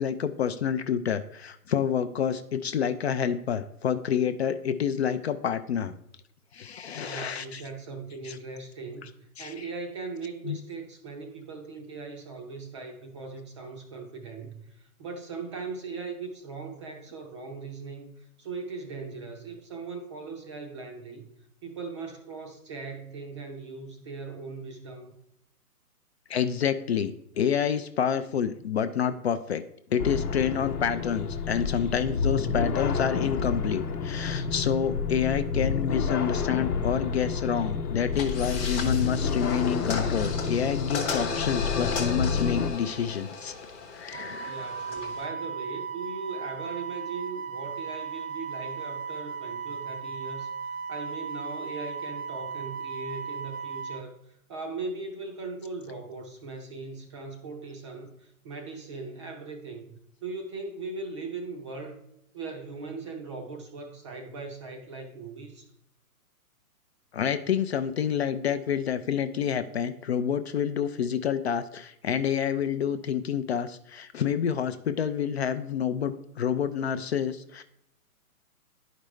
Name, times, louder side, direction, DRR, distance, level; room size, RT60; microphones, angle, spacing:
voice 1, 0.0-5.9 6.5-7.6 8.2-8.4 9.4-9.7 10.5-10.6 26.3-29.6 29.9-43.5 43.9-44.6 67.1-77.6, left 8 dB, 45° left, 0.4 m, -28 dB
voice 2, 7.0-21.3 21.6-25.2 44.4-62.0 62.3-65.7, right 4 dB, 20° right, 0.5 m, -39 dB
sound 1, 30.0-42.7, left 5 dB, 85° left, 1.0 m, -29 dB
sound 2, 38.1-45.2, left 4 dB, 15° left, 0.7 m, -35 dB
Wind instrument woodwind instrument, 44.1-54.0, right 6 dB, 65° right, 0.7 m, -36 dB
10.5 x 5.1 x 3.1 m
hypercardioid pair, 145°, 45 cm